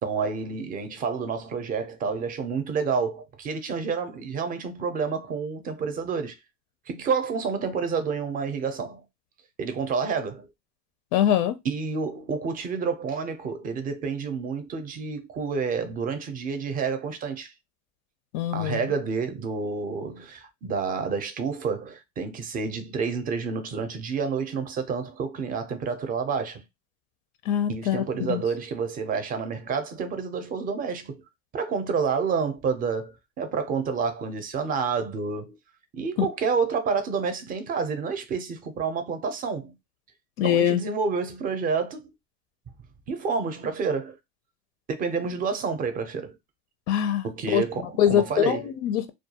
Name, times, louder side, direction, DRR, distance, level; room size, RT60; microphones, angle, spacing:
voice 1, 0.0-6.4 6.9-9.0 9.6-10.5 11.6-17.5 18.5-26.6 27.7-31.2 31.5-35.6 35.9-39.8 40.4-42.1 43.1-44.2 44.9-46.4 47.2-48.7, right 5 dB, 25° right, 0.5 m, -29 dB
voice 2, 11.1-11.6 18.3-18.8 27.5-28.4 36.2-36.3 40.4-40.8 46.9-47.3 47.5-47.6 48.0-49.1, left 10 dB, 75° left, 0.5 m, -23 dB
2.3 x 2.3 x 2.7 m
supercardioid pair, 135°, 32 cm